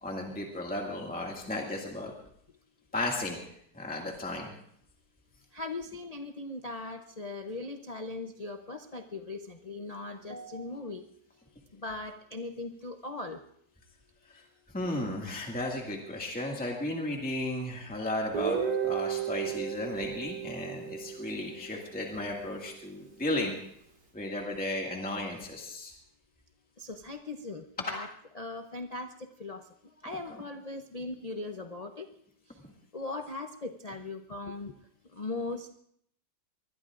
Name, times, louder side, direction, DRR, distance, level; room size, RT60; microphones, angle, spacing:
voice 1, 0.0-2.1 2.9-3.4 3.7-4.5 14.3-14.4 14.7-23.5 24.1-25.9 30.3-30.4, left 1 dB, 5° left, -1 dB, 2.0 m, -34 dB
voice 2, 5.5-11.1 11.7-13.4 26.8-28.1 28.4-32.1 32.9-34.7 35.1-35.7, left 2 dB, 65° left, 4 dB, 0.3 m, -39 dB
Guitar, 18.3-22.2, right 8 dB, 60° right, 2.9 m, -34 dB
24.0 x 20.5 x 2.5 m, 0.68 s
omnidirectional pair, 1.8 m